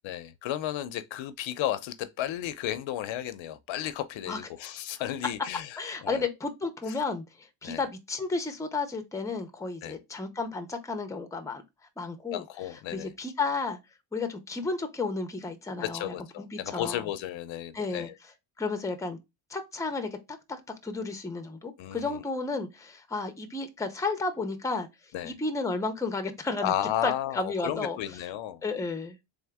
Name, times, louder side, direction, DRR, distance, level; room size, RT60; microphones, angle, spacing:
voice 1, 0.0-6.2 7.6-7.8 9.8-9.9 12.3-13.1 15.8-18.1 21.8-22.2 25.1-25.3 26.6-28.6, left 12 dB, 70° left, 0.6 m, -33 dB
voice 2, 5.8-11.6 12.0-12.4 12.9-13.8 14.1-17.1 17.7-18.1 18.6-19.2 19.5-24.9 25.2-26.7 27.0-28.2 28.6-29.2, left 3 dB, 5° left, 0.6 m, -32 dB
3.7 x 3.6 x 3.4 m
cardioid pair, 125°, 48 cm